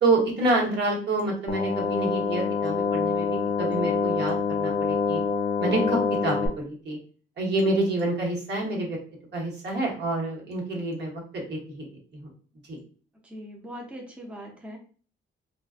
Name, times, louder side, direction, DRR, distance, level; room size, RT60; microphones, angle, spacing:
voice 1, 0.0-3.3 3.6-5.2 5.6-7.0 7.4-9.0 9.3-11.9 12.1-12.3 12.7-12.8, right 2 dB, 60° right, -2 dB, 1.2 m, -27 dB
sound 1, 1.5-6.5, left 5 dB, 40° left, 0.5 m, -26 dB
voice 2, 13.2-14.8, equal, 5° right, 0 dB, 0.6 m, -40 dB
2.4 x 2.3 x 2.4 m, 0.41 s
cardioid pair, 90°, 20 cm